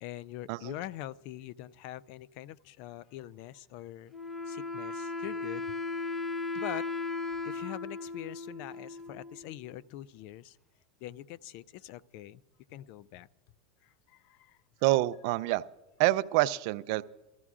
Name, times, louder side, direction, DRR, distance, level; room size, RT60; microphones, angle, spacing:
voice 1, 0.0-4.1 4.5-5.7 6.6-6.9 7.4-10.6 11.0-12.4 12.7-13.3 13.8-14.6, left 13 dB, 55° left, 21 dB, 0.3 m, -43 dB
Wind instrument woodwind instrument, 4.1-9.6, left 3 dB, 5° left, 0.7 m, -36 dB
voice 2, 14.8-15.6 16.0-17.0, right 18 dB, 60° right, 15 dB, 0.4 m, -27 dB
21.5 x 14.0 x 2.4 m, 1.1 s
supercardioid pair, 120°, 3 cm